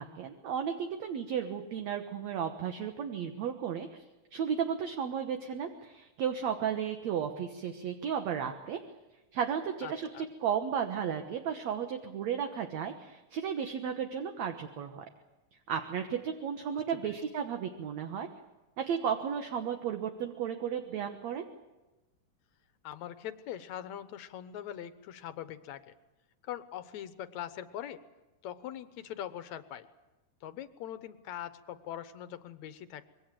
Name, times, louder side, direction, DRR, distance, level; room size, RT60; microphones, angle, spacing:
voice 1, 0.0-4.0 4.3-8.8 9.3-15.1 15.7-18.3 18.8-21.4, right 8 dB, 60° right, 5 dB, 2.3 m, -34 dB
voice 2, 9.8-10.3 16.7-17.1 22.8-26.0 26.4-28.0 28.4-29.9 30.4-33.0, left 11 dB, 65° left, 11 dB, 2.1 m, -42 dB
26.5 x 22.5 x 7.7 m, 1.1 s
omnidirectional pair, 3.8 m